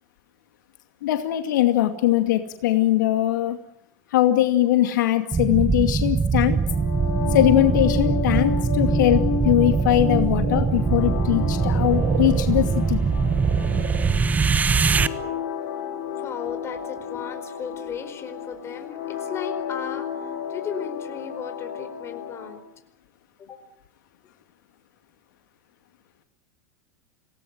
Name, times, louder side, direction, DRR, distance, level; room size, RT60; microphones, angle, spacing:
voice 1, 1.0-3.6 4.1-6.6 7.3-13.0, left 14 dB, 80° left, 6 dB, 2.4 m, -21 dB
sound 1, 5.3-15.1, right 5 dB, 15° right, 0.9 m, -22 dB
sound 2, 6.6-22.6, left 7 dB, 50° left, 7.2 m, -32 dB
sound 3, 9.7-15.5 15.7-15.8, right 8 dB, 50° right, 4.4 m, -37 dB
voice 2, 16.2-22.6 23.4-23.6, left 6 dB, 25° left, 7 dB, 4.7 m, -35 dB
27.5 x 18.0 x 9.5 m, 0.76 s
supercardioid pair, 125°, 10 cm